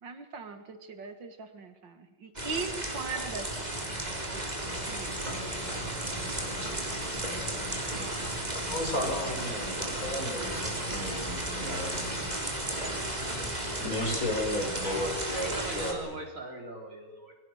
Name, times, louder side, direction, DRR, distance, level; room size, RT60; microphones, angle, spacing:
voice 1, 0.0-4.6 4.9-5.2, right 4 dB, 85° right, 9 dB, 2.7 m, -40 dB
sound 1, 2.4-15.9, right 1 dB, 20° right, 4.0 m, -34 dB
sound 2, 4.6-12.3, left 1 dB, 20° left, 3.8 m, -45 dB
voice 2, 8.7-12.0 13.8-16.0, left 1 dB, 50° left, 2 dB, 5.8 m, -34 dB
voice 3, 14.8-17.3, right 2 dB, 45° right, 3 dB, 4.4 m, -40 dB
27.5 x 23.0 x 6.5 m, 1.1 s
omnidirectional pair, 1.9 m